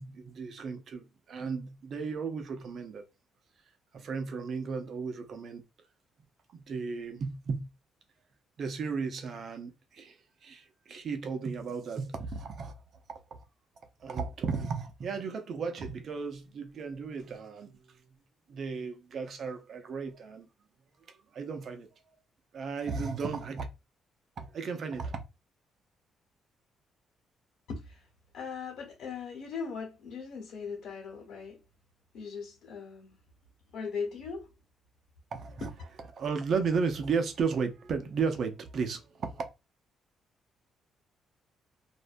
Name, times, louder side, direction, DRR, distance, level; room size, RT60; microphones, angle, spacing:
voice 1, 0.0-3.0 3.9-5.6 6.5-7.7 8.6-12.8 13.3-13.4 14.0-18.0 18.5-20.5 21.1-21.9 22.5-23.7 24.4-25.2 35.3-35.7 36.1-39.5, right 5 dB, 55° right, 0.6 m, -34 dB
voice 2, 27.7-28.0 28.3-31.6 32.1-33.1 33.7-34.5, left 5 dB, 75° left, 1.2 m, -39 dB
2.6 x 2.2 x 2.5 m
cardioid pair, 90°, 0 cm